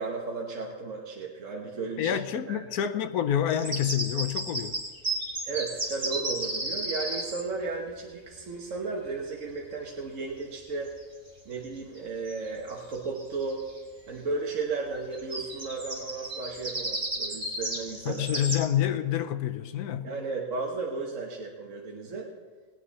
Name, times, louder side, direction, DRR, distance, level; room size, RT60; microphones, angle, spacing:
voice 1, 0.0-2.2 2.4-2.6 5.4-10.9 11.4-13.6 14.1-18.3 20.0-22.3, right 4 dB, 60° right, 1.5 m, -34 dB
voice 2, 2.0-4.7 18.0-20.1, left 10 dB, 85° left, 1.2 m, -28 dB
sound 1, 3.5-7.4 10.9-11.0 11.5-12.0 12.3-12.4 12.7-13.8 15.1-18.6, right 2 dB, 40° right, 2.6 m, -33 dB
19.5 x 9.5 x 4.2 m
omnidirectional pair, 1.6 m